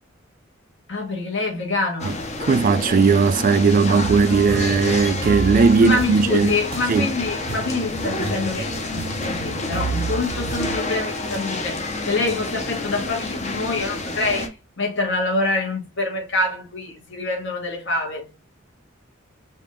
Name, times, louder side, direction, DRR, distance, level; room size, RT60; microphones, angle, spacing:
voice 1, 0.9-2.1 5.8-18.3, left 3 dB, 60° left, 1.3 m, -26 dB
sound 1, 2.0-14.5, left 2 dB, 35° left, 0.7 m, -29 dB
voice 2, 2.4-6.6 6.9-7.1, right 5 dB, 40° right, 0.3 m, -17 dB
sound 2, 4.0-10.8, right 4 dB, 85° right, 0.7 m, -31 dB
5.1 x 2.5 x 3.1 m
head